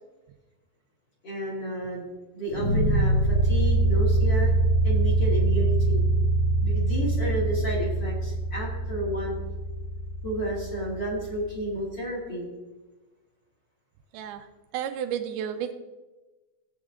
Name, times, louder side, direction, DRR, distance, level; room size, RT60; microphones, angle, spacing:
voice 1, 1.2-2.1 2.3-4.5 4.8-6.0 6.6-9.4 10.2-12.5, right 1 dB, 30° left, -4 dB, 2.8 m, -31 dB
sound 1, 2.5-11.5, right 2 dB, 65° left, 4.7 m, -24 dB
voice 2, 14.1-14.4 14.7-15.7, right 9 dB, 80° right, 8 dB, 2.7 m, -31 dB
17.5 x 8.2 x 3.7 m, 1.2 s
omnidirectional pair, 4.4 m